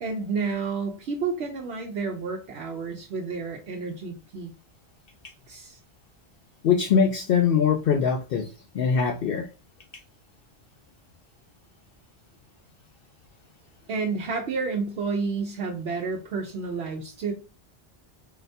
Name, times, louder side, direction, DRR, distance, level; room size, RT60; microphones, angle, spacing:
voice 1, 0.0-4.5 5.5-5.8 13.9-17.3, right 4 dB, 75° right, 0.9 m, -30 dB
voice 2, 6.6-8.5 8.7-9.5, left 6 dB, 65° left, 0.7 m, -22 dB
4.0 x 3.2 x 2.7 m
omnidirectional pair, 1.1 m